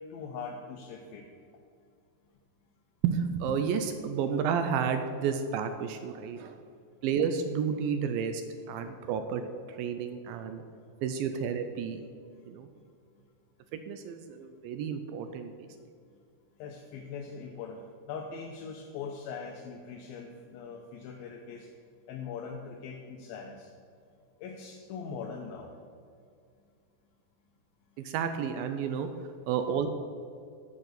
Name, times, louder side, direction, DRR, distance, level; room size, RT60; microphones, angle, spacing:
voice 1, 0.1-1.3 16.6-21.7 22.1-23.7 24.4-25.7, left 5 dB, 80° left, 1 dB, 2.5 m, -41 dB
voice 2, 3.0-6.6 7.0-10.6 11.0-12.0 12.5-12.7 13.7-15.7 28.0-29.1 29.5-29.9, right 7 dB, 80° right, 8 dB, 2.2 m, -31 dB
9.1 x 6.1 x 8.0 m, 2.3 s
omnidirectional pair, 4.4 m